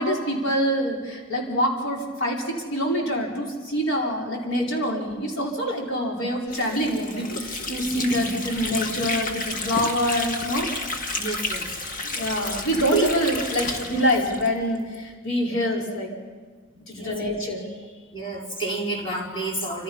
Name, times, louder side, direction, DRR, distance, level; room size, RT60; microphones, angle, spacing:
voice 1, 0.0-10.7 12.0-16.1 16.9-17.7, equal, 65° left, -1 dB, 5.1 m, -25 dB
Water / Sink (filling or washing), 6.5-15.0, left 2 dB, 40° left, 1.8 m, -31 dB
voice 2, 11.2-11.7 12.9-13.1 16.9-17.2 18.1-19.8, right 3 dB, 25° left, -2 dB, 4.4 m, -29 dB
28.0 x 26.5 x 5.7 m, 1.5 s
head